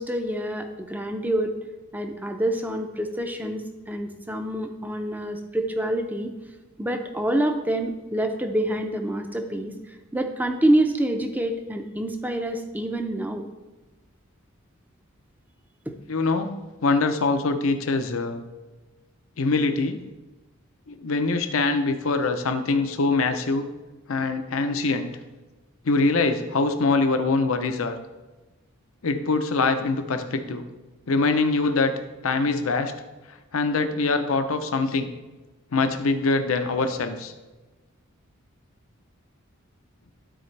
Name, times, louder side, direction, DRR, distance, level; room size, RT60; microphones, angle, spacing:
voice 1, 0.0-1.5 1.9-6.3 6.8-9.7 10.1-13.5 15.9-16.0, right 1 dB, 10° right, 5 dB, 0.5 m, -26 dB
voice 2, 16.1-16.5 16.8-18.4 19.4-20.0 20.9-23.7 24.1-25.1 25.8-27.9 29.0-30.6 31.1-31.9 32.2-32.9 33.5-35.1 35.7-37.3, left 3 dB, 75° left, 8 dB, 0.7 m, -23 dB
12.5 x 4.2 x 3.3 m, 1.2 s
head